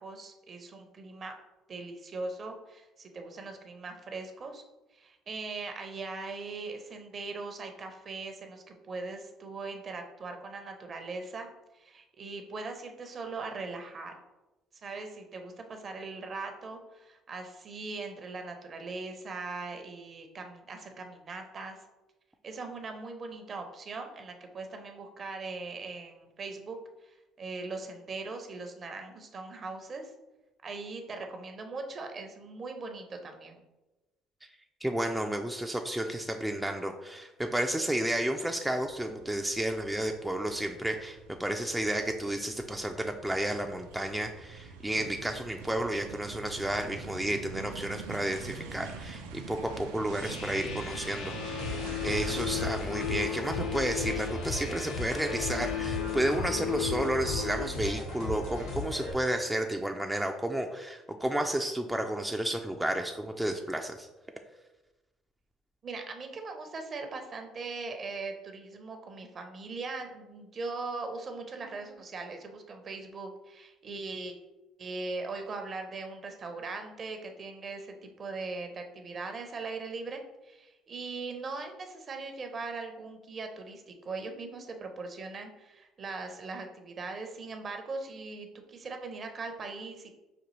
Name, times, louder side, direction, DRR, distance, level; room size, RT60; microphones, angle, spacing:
voice 1, 0.0-1.4 1.7-4.6 4.9-11.5 11.7-14.1 14.8-21.8 22.4-26.8 27.0-30.1 30.6-33.6 65.8-74.3 74.8-90.1, right 3 dB, 45° right, 5 dB, 0.6 m, -40 dB
voice 2, 34.8-64.1, right 1 dB, 5° right, 3 dB, 0.3 m, -32 dB
sound 1, 38.8-52.7, right 4 dB, 85° right, 0.4 m, -45 dB
sound 2, 50.2-57.7, left 10 dB, 65° left, 0.4 m, -36 dB
sound 3, 51.6-59.1, left 1 dB, 80° left, 1.4 m, -36 dB
5.1 x 2.3 x 3.1 m, 1.1 s
hypercardioid pair, 60°, 0 cm